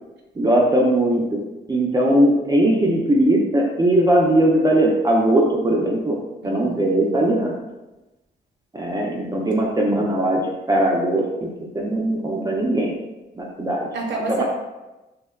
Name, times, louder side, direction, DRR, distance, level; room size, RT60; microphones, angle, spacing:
voice 1, 0.4-1.2 1.7-6.2 6.4-7.5 8.7-11.5 11.7-12.9 13.4-13.9 14.3-14.4, right 1 dB, 20° right, -2 dB, 0.4 m, -19 dB
voice 2, 6.4-7.3 13.9-14.4, right 3 dB, 65° right, 0 dB, 0.6 m, -30 dB
2.7 x 2.1 x 2.3 m, 1.1 s
supercardioid pair, 50°, 20 cm